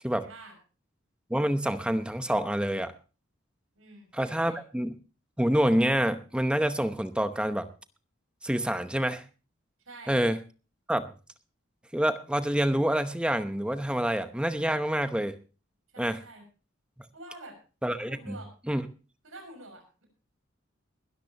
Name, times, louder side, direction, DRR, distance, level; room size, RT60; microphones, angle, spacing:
voice 1, 0.1-0.6 3.7-4.6 9.8-10.2 15.9-16.4 17.1-17.6 18.1-18.5 19.2-20.0, right 2 dB, 85° right, 5 dB, 6.4 m, -47 dB
voice 2, 1.3-2.9 4.1-4.9 5.4-7.7 8.4-9.2 10.1-10.4 10.9-11.1 11.9-15.3 16.0-16.2 17.8-18.4 18.7-18.8, right 1 dB, 5° right, 9 dB, 0.8 m, -27 dB
21.0 x 13.0 x 2.9 m, 0.35 s
head